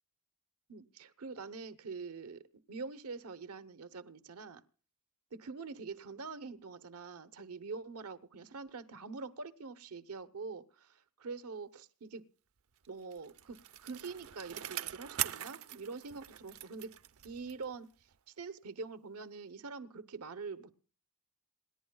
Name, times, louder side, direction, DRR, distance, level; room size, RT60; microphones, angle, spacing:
voice 1, 0.7-4.6 5.3-12.3 12.9-16.9 17.2-17.9 18.3-20.7, right 4 dB, 90° right, 13 dB, 0.9 m, -45 dB
Bicycle, 12.9-17.8 18.1-18.2, right 13 dB, 70° right, 0.6 m, -42 dB
26.5 x 11.0 x 2.3 m, 0.37 s
head